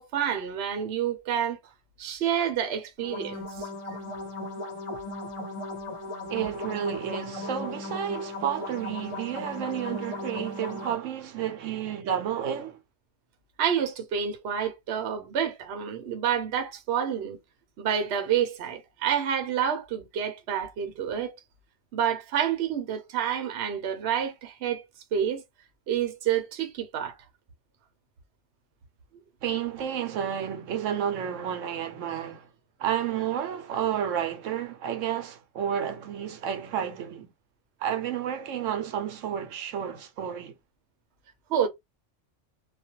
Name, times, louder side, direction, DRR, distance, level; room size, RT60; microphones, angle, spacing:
voice 1, 0.0-1.6 2.0-3.7 13.6-17.4 17.8-21.4 21.9-24.8 25.1-25.4 25.9-27.2 41.5-41.7, right 8 dB, 65° right, 0.9 m, -28 dB
sound 1, 3.0-11.0, left 2 dB, 30° left, 0.8 m, -37 dB
voice 2, 6.3-12.8 29.4-32.5 32.8-37.3 37.8-40.5, right 9 dB, 85° right, 1.0 m, -31 dB
2.4 x 2.1 x 2.8 m
omnidirectional pair, 1.3 m